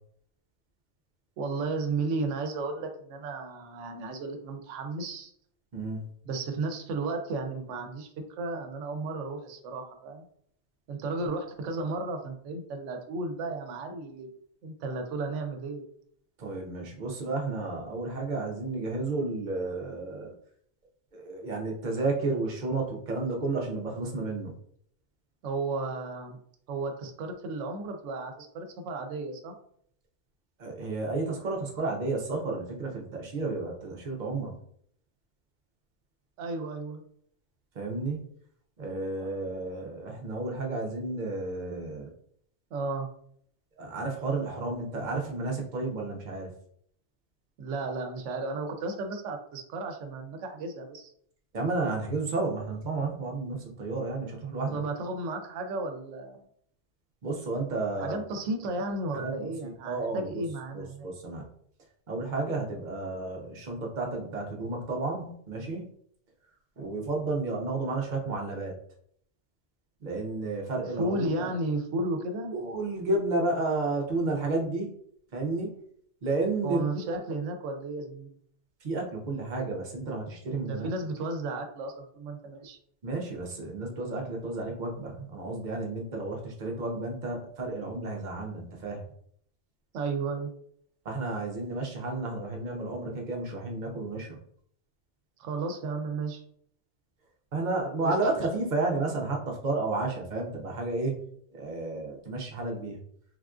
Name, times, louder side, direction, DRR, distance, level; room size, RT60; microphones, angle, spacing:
voice 1, 1.4-5.3 6.3-8.1 8.4-10.3 10.9-14.3 14.6-15.8 25.4-26.4 26.7-29.5 36.4-37.0 39.2-39.3 42.7-43.1 47.6-51.1 54.7-56.5 58.0-61.1 71.0-72.5 76.6-78.3 80.6-82.8 89.9-90.5 95.4-96.4 98.0-98.2, right 3 dB, 75° right, 5 dB, 0.9 m, -33 dB
voice 2, 5.7-6.0 16.4-20.3 21.1-24.5 30.6-34.5 37.7-38.2 38.8-42.1 43.8-46.5 51.5-54.8 57.2-58.2 59.1-60.4 60.7-61.5 62.1-65.9 66.8-68.7 70.0-71.5 72.5-74.9 75.3-75.7 76.2-76.9 78.8-80.9 83.0-89.0 91.0-94.4 97.5-101.2 101.5-103.0, right 3 dB, 50° right, 0 dB, 0.6 m, -32 dB
3.5 x 2.4 x 2.3 m, 0.65 s
omnidirectional pair, 1.3 m